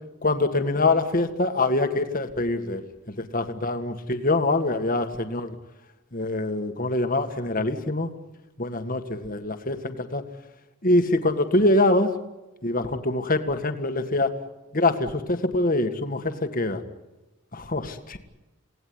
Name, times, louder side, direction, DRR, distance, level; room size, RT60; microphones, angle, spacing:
voice 1, 0.2-2.8 3.2-5.6 6.1-8.1 8.6-10.2 10.8-12.1 12.6-14.3 14.7-16.8 17.5-18.2, left 2 dB, 40° left, 7 dB, 1.9 m, -24 dB
28.5 x 18.5 x 9.6 m, 1.1 s
head